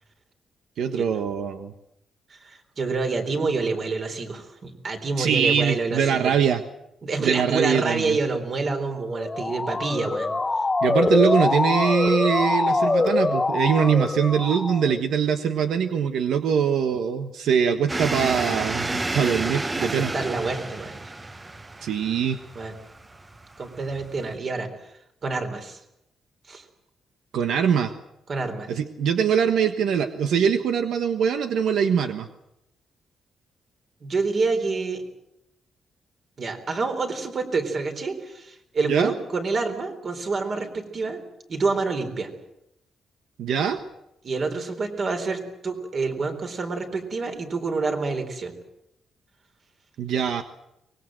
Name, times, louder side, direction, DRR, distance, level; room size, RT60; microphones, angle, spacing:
voice 1, 0.8-1.7 5.2-6.6 7.2-8.2 10.8-20.1 21.8-22.4 27.3-27.9 28.7-32.3 38.9-39.1 43.4-43.8 50.0-50.4, right 7 dB, 85° right, 8 dB, 1.3 m, -23 dB
voice 2, 2.3-6.3 7.0-10.3 19.8-20.9 22.6-22.7 23.6-24.9 25.2-25.8 26.5-26.6 28.3-28.7 34.0-35.0 36.4-41.2 41.5-42.3 44.2-48.5, right 4 dB, 40° right, 6 dB, 4.0 m, -27 dB
Motor vehicle (road) / Siren, 9.1-15.0, left 3 dB, 20° left, 0.8 m, -24 dB
sound 1, 17.9-24.3, right 2 dB, 20° right, 0.9 m, -31 dB
24.0 x 20.5 x 7.8 m, 0.82 s
cardioid pair, 140°, 0 cm